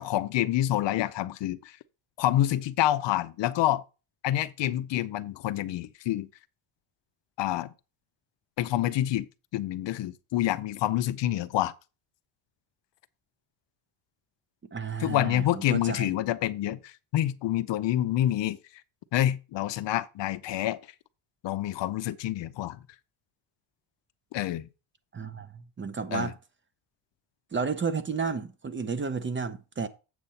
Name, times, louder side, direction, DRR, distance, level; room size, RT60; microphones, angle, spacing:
voice 1, 0.0-1.8 2.2-3.8 4.2-6.3 7.4-7.7 8.6-9.3 9.5-11.7 15.0-18.6 19.1-20.8 21.4-22.8 24.3-24.7 26.1-26.3, left 13 dB, 60° left, 0.7 m, -27 dB
voice 2, 14.7-16.1 25.1-26.3 27.5-29.9, right 5 dB, 25° right, 0.7 m, -32 dB
7.8 x 7.4 x 4.1 m
cardioid pair, 140°, 50 cm